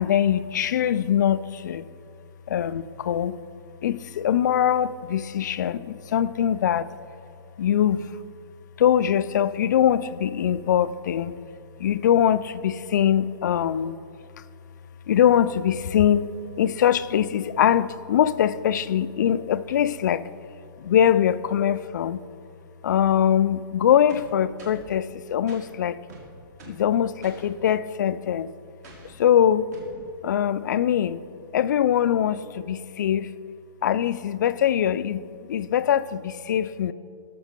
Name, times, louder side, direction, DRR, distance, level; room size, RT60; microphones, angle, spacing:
voice 1, 0.0-1.9 2.5-3.4 3.8-6.9 7.6-8.1 8.8-11.4 11.8-14.0 15.1-16.3 16.6-20.2 20.8-22.2 22.8-26.0 26.7-28.5 29.2-29.7 30.0-31.2 31.5-33.3 33.8-35.2 35.5-36.9, left 9 dB, 50° left, 15 dB, 0.4 m, -22 dB
sound 1, 24.1-24.9 25.5-25.7 26.1-26.9 27.2-27.5 28.8-29.2 29.7-30.0, right 4 dB, 45° right, 2.2 m, -46 dB
17.5 x 6.9 x 4.4 m, 2.4 s
hypercardioid pair, 175°, 12 cm